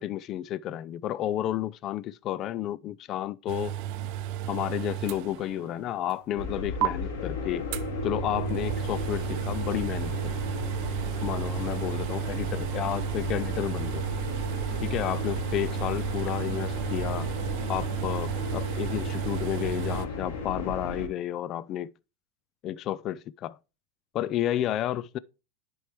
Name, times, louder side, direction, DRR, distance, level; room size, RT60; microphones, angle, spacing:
voice 1, 0.0-3.7 4.5-7.7 8.0-10.3 11.2-14.0 14.8-17.3 17.7-21.9 22.6-23.6 24.1-25.2, left 12 dB, 35° left, 0.3 m, -31 dB
sound 1, 3.5-5.8 6.1-6.2 6.8-6.9 7.7-20.1, right 12 dB, 50° right, 0.7 m, -33 dB
sound 2, 6.4-21.1, left 2 dB, 75° left, 2.6 m, -35 dB
10.5 x 4.6 x 3.3 m
supercardioid pair, 145°, 0 cm